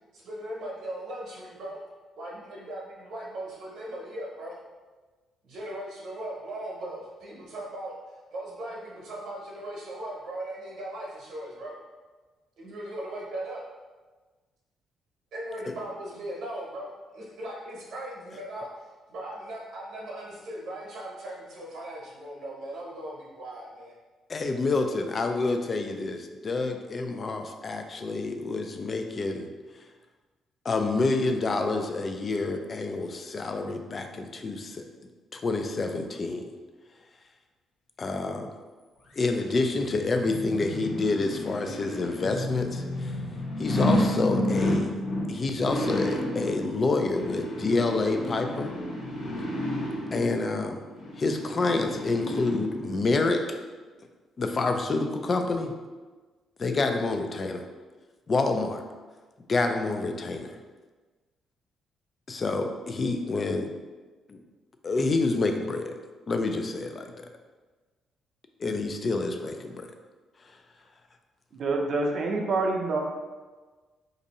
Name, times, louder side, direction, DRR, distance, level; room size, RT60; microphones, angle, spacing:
voice 1, 0.1-1.8 2.2-4.5 5.4-7.9 8.3-11.7 12.6-13.6 15.3-18.7 19.1-23.9, right 1 dB, 70° right, -4 dB, 0.9 m, -38 dB
voice 2, 24.3-29.5 30.6-34.8 35.3-36.5 38.0-38.5 39.2-43.2 43.6-44.9 45.3-48.7 50.1-50.8 51.2-53.4 54.4-55.7 56.6-57.6 58.3-58.8 59.5-60.5 62.3-63.7 64.3-64.4 64.8-65.9 66.3-67.1 68.6-69.9, left 3 dB, 30° left, 5 dB, 0.3 m, -28 dB
sound 1, 39.2-53.1 53.5-53.6, left 1 dB, 70° left, 0.9 m, -31 dB
voice 3, 71.5-73.0, right 3 dB, 50° right, 1 dB, 0.5 m, -26 dB
2.6 x 2.6 x 4.0 m, 1.3 s
cardioid pair, 140°, 0 cm